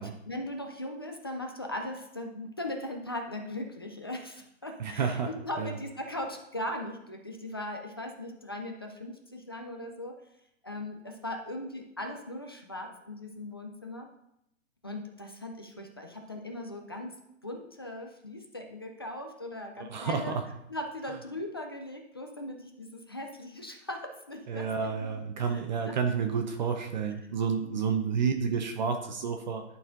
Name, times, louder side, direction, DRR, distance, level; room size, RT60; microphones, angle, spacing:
voice 1, 0.0-10.2 10.6-14.1 14.8-20.3 20.7-25.6 25.9-26.0 27.6-27.8, left 1 dB, 20° left, 3 dB, 0.3 m, -39 dB
voice 2, 4.8-5.3 5.6-5.7 19.8-20.5 24.5-29.6, right 6 dB, 35° right, 5 dB, 0.7 m, -30 dB
10.5 x 4.2 x 3.8 m, 0.79 s
hypercardioid pair, 155°, 38 cm